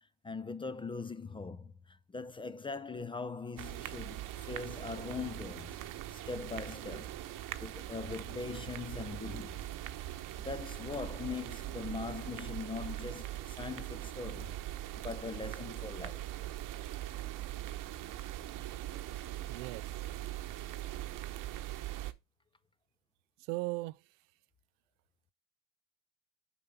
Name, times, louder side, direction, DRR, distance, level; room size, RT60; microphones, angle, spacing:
voice 1, 0.2-5.8 6.1-9.6 10.4-14.6 15.0-16.3, left 4 dB, 15° left, 0.4 m, -41 dB
sound 1, 3.6-22.1, right 14 dB, 50° right, 1.0 m, -41 dB
voice 2, 19.5-20.1 23.5-24.0, right 23 dB, 70° right, 0.5 m, -38 dB
7.0 x 5.9 x 5.4 m
supercardioid pair, 95°, 41 cm